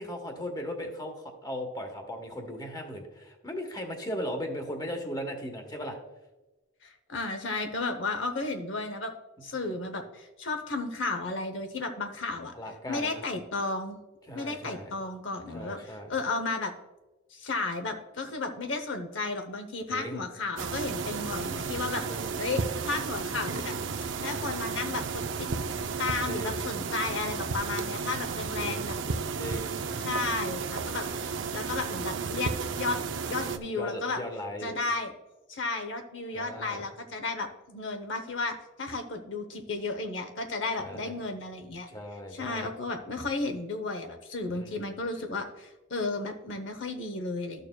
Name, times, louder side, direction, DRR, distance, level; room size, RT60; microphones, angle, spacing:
voice 1, 0.0-6.0 9.4-9.5 12.6-13.2 14.3-14.9 15.5-16.1 19.9-20.2 22.1-22.4 26.3-26.6 28.6-28.9 29.4-29.8 33.7-34.7 36.3-36.8 40.8-41.1 41.9-42.7 44.5-44.9, equal, 20° left, 4 dB, 1.2 m, -37 dB
voice 2, 6.8-9.1 9.4-12.5 12.9-14.0 14.3-16.7 17.3-23.7 24.2-25.5 26.0-28.9 30.0-31.1 31.5-33.0 33.3-34.2 34.6-35.1 35.5-41.9 42.3-47.7, left 3 dB, 65° left, 6 dB, 0.8 m, -33 dB
sound 1, 20.6-33.6, right 5 dB, 65° right, 0.5 m, -33 dB
12.5 x 6.6 x 2.3 m, 1.1 s
head